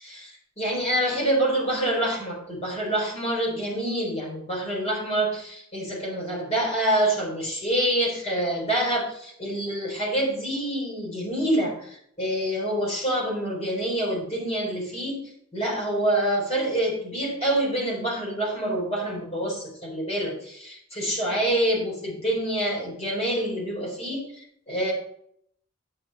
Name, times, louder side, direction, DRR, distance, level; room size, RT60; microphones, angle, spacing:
voice 1, 0.1-15.2 15.5-24.9, right 1 dB, 30° left, -2 dB, 3.9 m, -26 dB
9.7 x 6.2 x 4.1 m, 0.68 s
head